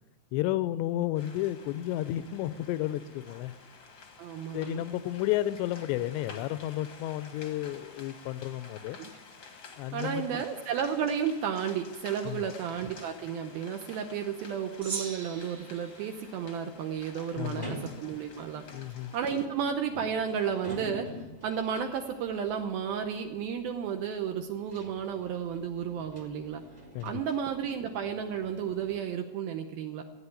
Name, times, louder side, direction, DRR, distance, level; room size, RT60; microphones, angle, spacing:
voice 1, 0.3-3.5 4.5-9.0 9.8-10.4 12.3-12.5 17.4-17.8 18.7-19.1 26.9-27.2, left 14 dB, 85° left, 15 dB, 2.9 m, -32 dB
sound 1, 1.1-19.5, left 4 dB, 60° left, 1.3 m, -51 dB
voice 2, 4.2-4.8 9.0-9.1 9.9-18.6 19.1-21.1 21.4-26.6 27.0-30.0, right 7 dB, 75° right, 5 dB, 2.4 m, -32 dB
Gong, 14.8-17.4, right 4 dB, 45° right, 1.6 m, -41 dB
sound 2, 17.6-29.0, equal, 25° right, 1.0 m, -47 dB
15.0 x 9.0 x 9.8 m, 1.2 s
omnidirectional pair, 4.9 m